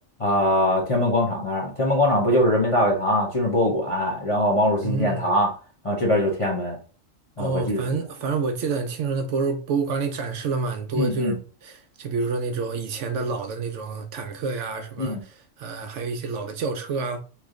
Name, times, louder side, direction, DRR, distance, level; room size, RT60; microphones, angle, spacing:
voice 1, 0.2-5.5 5.8-6.8 7.4-8.0 10.9-11.4 15.0-15.2, left 1 dB, 35° left, 0.6 m, -22 dB
voice 2, 4.8-5.3 7.4-17.2, right 4 dB, 70° right, 0.8 m, -28 dB
3.1 x 2.4 x 3.6 m
omnidirectional pair, 1.4 m